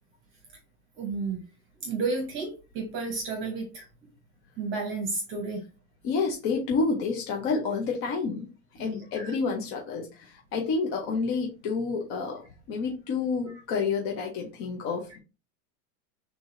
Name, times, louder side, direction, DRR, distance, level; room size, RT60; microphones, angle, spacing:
voice 1, 1.0-1.4 1.8-3.8 4.6-5.6 8.8-9.3, right 4 dB, 25° right, 3 dB, 0.9 m, -32 dB
voice 2, 6.0-8.5 8.7-15.2, left 4 dB, 30° left, 1 dB, 0.6 m, -29 dB
4.6 x 3.7 x 2.5 m, 0.29 s
supercardioid pair, 155°, 45 cm